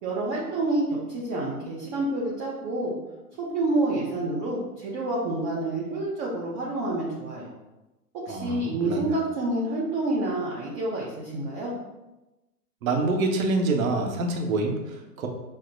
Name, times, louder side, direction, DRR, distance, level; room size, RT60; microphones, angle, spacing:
voice 1, 0.0-2.9 3.4-7.5 8.1-11.7, right 2 dB, 20° right, -5 dB, 0.5 m, -28 dB
voice 2, 8.3-9.1 12.8-15.3, right 2 dB, 60° right, 2 dB, 0.9 m, -26 dB
6.0 x 2.0 x 2.6 m, 1.0 s
hypercardioid pair, 115°, 48 cm